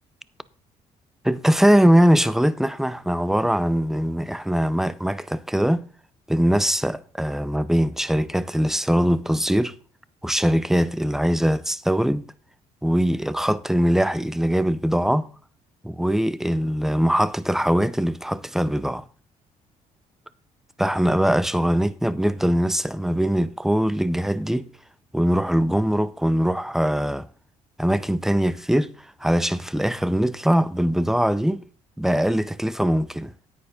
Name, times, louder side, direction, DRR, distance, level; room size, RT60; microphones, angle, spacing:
voice 1, 1.2-5.8 6.3-9.8 10.2-12.2 12.8-15.3 15.8-19.0 20.8-24.7 25.1-27.3 27.8-28.9 29.2-31.6 32.0-33.3, equal, 5° right, 0.6 m, -21 dB
9.9 x 9.1 x 3.9 m
cardioid pair, 85°, 14 cm